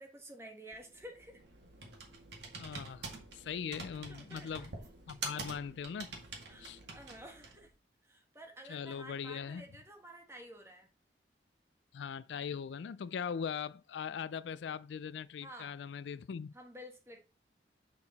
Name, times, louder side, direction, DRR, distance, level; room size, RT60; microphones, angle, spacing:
voice 1, 0.0-1.4 4.0-4.6 6.5-7.7 8.0-10.9 15.4-15.8 16.5-17.2, equal, 15° right, 1.4 m, -51 dB
Computer keyboard, 0.7-7.7, right 3 dB, 75° right, 1.9 m, -47 dB
voice 2, 2.6-4.7 5.1-6.2 6.6-6.8 8.7-9.6 11.9-16.5, left 7 dB, 80° left, 0.4 m, -40 dB
6.8 x 4.8 x 4.1 m
head